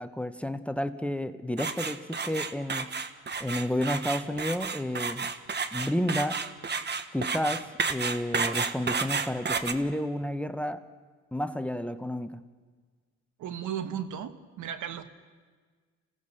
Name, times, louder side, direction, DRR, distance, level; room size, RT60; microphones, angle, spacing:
voice 1, 0.0-2.9 3.4-5.3 5.7-6.5 7.1-10.8 11.3-12.4, left 1 dB, 5° left, 11 dB, 0.9 m, -31 dB
sound 1, 1.6-9.7, right 5 dB, 35° right, 1.2 m, -31 dB
voice 2, 13.4-15.0, right 9 dB, 80° right, 10 dB, 1.4 m, -35 dB
27.0 x 17.0 x 6.6 m, 1.5 s
cardioid pair, 90°, 30 cm